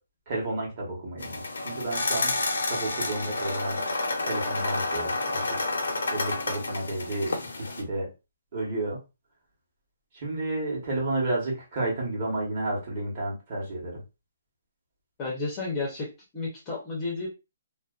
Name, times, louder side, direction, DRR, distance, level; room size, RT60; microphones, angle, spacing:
voice 1, 0.3-2.3 2.7-3.8 4.2-5.6 6.1-7.4 7.7-8.1 8.5-9.0 10.1-14.0, right 2 dB, 30° right, -4 dB, 1.0 m, -31 dB
sound 1, 1.2-7.8, left 2 dB, 85° left, 0.7 m, -30 dB
voice 2, 15.2-17.3, left 3 dB, 15° left, -3 dB, 0.6 m, -32 dB
2.4 x 2.1 x 2.4 m, 0.28 s
hypercardioid pair, 175°, 0 cm